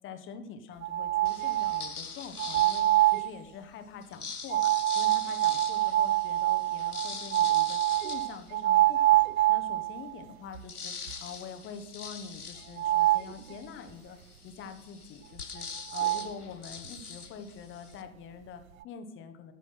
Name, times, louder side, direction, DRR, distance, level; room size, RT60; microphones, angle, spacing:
voice 1, 0.0-10.9 11.2-14.2 14.4-19.5, left 6 dB, 25° left, 8 dB, 1.4 m, -45 dB
sound 1, 0.8-1.9 2.4-3.3 4.5-10.1 10.5-10.6 11.1-11.2 12.8-13.3 15.6-15.7 15.9-16.3, right 16 dB, 65° right, 0.5 m, -25 dB
sound 2, 1.2-3.4 4.0-9.2 9.7-9.8 10.0-18.0, left 5 dB, 85° left, 1.2 m, -43 dB
14.5 x 7.0 x 5.7 m, 0.76 s
figure-of-eight pair, 90°, 44 cm